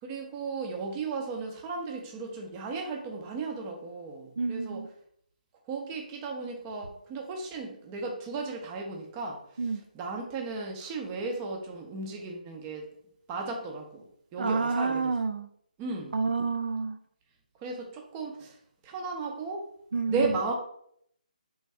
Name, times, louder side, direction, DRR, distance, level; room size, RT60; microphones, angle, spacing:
voice 1, 0.1-4.8 5.7-9.4 9.9-12.9 13.3-14.0 14.3-15.1 15.8-16.2 17.6-18.5 18.8-19.7 20.1-20.5, right 3 dB, 15° right, 1 dB, 0.5 m, -35 dB
voice 2, 4.4-4.9 9.6-9.8 14.4-15.5 16.1-17.0 19.9-20.3, right 4 dB, 85° right, 9 dB, 0.3 m, -29 dB
3.4 x 2.5 x 3.3 m, 0.68 s
hypercardioid pair, 160°, 5 cm